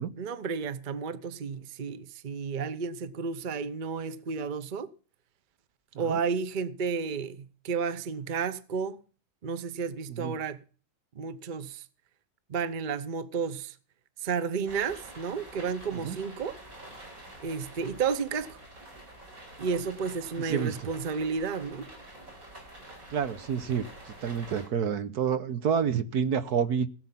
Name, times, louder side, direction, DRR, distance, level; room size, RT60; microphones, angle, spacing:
voice 1, 0.2-4.9 6.0-9.0 9.4-10.6 11.2-11.8 12.5-13.7 14.2-16.6 17.4-18.6 19.6-21.9, right 5 dB, 35° right, 0.9 m, -32 dB
sound 1, 14.7-24.7, right 1 dB, 60° right, 5.9 m, -47 dB
voice 2, 20.4-20.7 23.1-26.9, right 7 dB, 75° right, 1.6 m, -29 dB
17.0 x 8.3 x 5.8 m
omnidirectional pair, 1.7 m